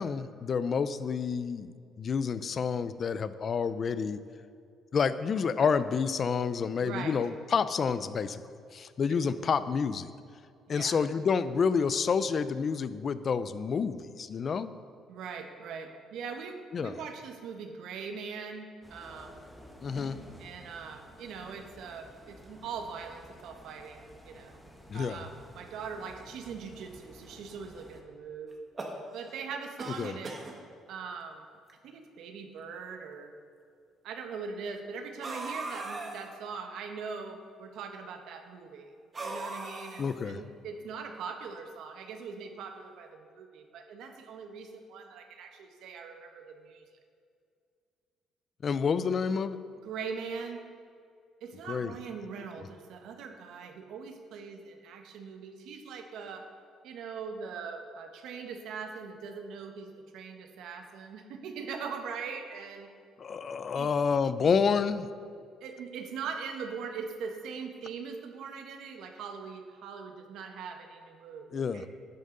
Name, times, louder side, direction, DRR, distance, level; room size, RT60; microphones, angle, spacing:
voice 1, 0.0-4.2 4.9-8.4 8.7-10.1 10.7-14.7 16.7-17.0 19.8-20.2 24.9-25.2 30.0-30.1 40.0-40.4 48.6-49.6 51.7-51.9 63.2-65.1 71.5-71.8, left 6 dB, 35° left, 14 dB, 0.4 m, -29 dB
voice 2, 6.8-7.2 10.7-11.0 15.1-19.4 20.4-24.6 24.9-28.5 29.1-30.3 30.9-31.5 31.8-33.3 34.0-38.9 39.2-46.8 49.8-50.6 51.4-56.5 56.8-62.9 63.7-63.9 65.6-71.9, right 5 dB, 70° right, 5 dB, 1.1 m, -41 dB
sound 1, 18.8-28.0, equal, 5° left, 1.0 m, -52 dB
sound 2, 28.5-29.4 29.8-30.5 31.4-31.5 31.7-31.8 32.7-32.8 35.2-36.3 39.1-40.3, right 2 dB, 25° right, 1.3 m, -39 dB
11.0 x 9.3 x 3.8 m, 2.3 s
cardioid pair, 140°, 0 cm